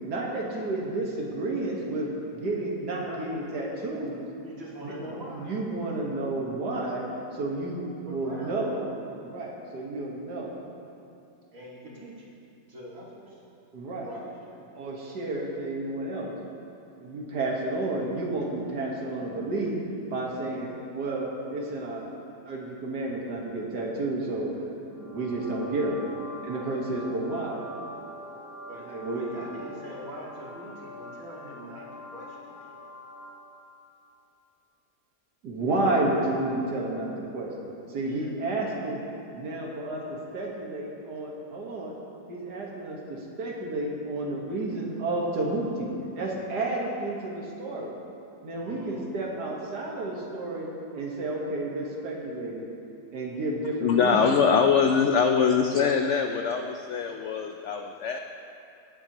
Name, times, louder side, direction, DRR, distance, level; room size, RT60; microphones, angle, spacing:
voice 1, 0.1-4.2 4.8-7.1 7.3-8.8 9.2-10.6 13.7-14.1 14.8-16.3 17.0-19.8 20.1-22.0 22.5-24.5 24.9-26.0 26.4-27.6 28.9-29.6 35.4-39.0 39.3-40.0 40.3-41.9 42.3-47.9 48.4-50.7 50.9-52.7 53.1-54.4, right 2 dB, 80° right, -2 dB, 2.0 m, -31 dB
voice 2, 3.0-3.3 4.4-5.5 8.1-8.7 11.5-12.3 12.7-13.4 14.0-14.6 28.7-28.8 29.1-32.7 38.0-38.3 48.6-49.1, equal, 55° right, -6 dB, 2.5 m, -43 dB
sound 1, 24.9-33.7, equal, 35° left, 1.6 m, -44 dB
voice 3, 53.8-58.2, left 6 dB, 75° left, 5 dB, 0.6 m, -23 dB
19.0 x 7.7 x 3.0 m, 2.7 s
omnidirectional pair, 1.8 m